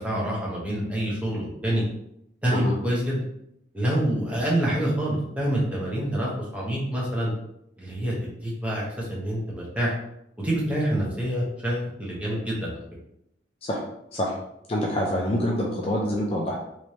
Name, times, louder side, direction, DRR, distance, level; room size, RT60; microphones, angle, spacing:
voice 1, 0.0-1.8 2.4-3.2 3.7-7.3 7.8-9.9 10.4-12.8, right 1 dB, 5° right, -5 dB, 1.0 m, -27 dB
voice 2, 14.7-16.6, equal, 30° left, -1 dB, 0.5 m, -26 dB
3.2 x 3.1 x 2.8 m, 0.77 s
head